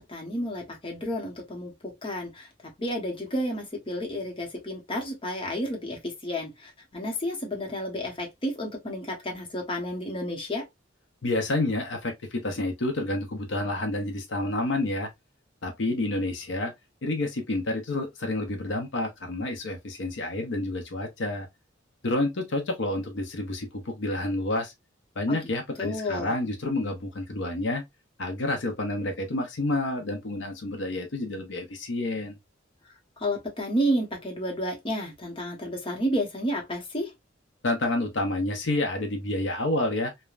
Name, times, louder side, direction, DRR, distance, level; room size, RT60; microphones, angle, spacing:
voice 1, 0.0-1.7 2.0-2.5 2.8-10.6 25.3-25.4 25.8-26.3 33.2-37.1, equal, 25° left, 0.8 m, -31 dB
voice 2, 11.2-15.1 15.6-16.7 17.0-21.5 22.0-24.7 25.2-27.8 28.2-32.4 37.6-40.1, left 2 dB, 70° left, 0.7 m, -29 dB
3.2 x 2.1 x 2.3 m
head